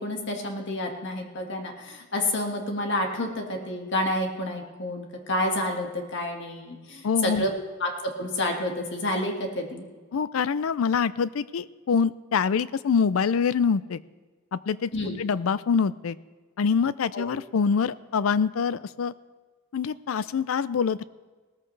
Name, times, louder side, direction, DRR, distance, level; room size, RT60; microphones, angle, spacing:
voice 1, 0.0-7.5 7.8-7.9 8.2-9.9 14.9-15.2 17.1-17.2, left 1 dB, 60° left, 2 dB, 1.8 m, -29 dB
voice 2, 7.0-7.4 10.1-14.0 14.5-14.9 15.2-16.2 16.6-19.1 19.7-21.0, left 6 dB, 85° left, 17 dB, 0.4 m, -25 dB
18.0 x 14.0 x 3.3 m, 1.3 s
head